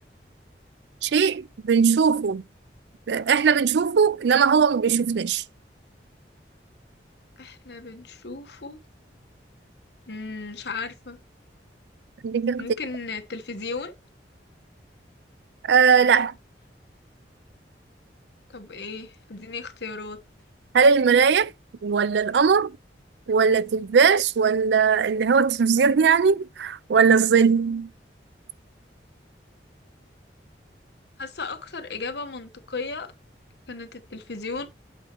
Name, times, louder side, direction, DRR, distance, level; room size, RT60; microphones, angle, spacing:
voice 1, 1.0-2.4 3.1-5.4 12.2-12.7 15.6-16.3 20.7-21.5 21.8-22.7 23.3-27.9, right 6 dB, 75° right, 0.4 m, -19 dB
voice 2, 7.4-8.8 10.1-11.2 12.6-13.9 18.5-20.2 31.2-33.1 33.7-34.7, left 4 dB, 70° left, 1.1 m, -35 dB
8.3 x 4.2 x 4.5 m
head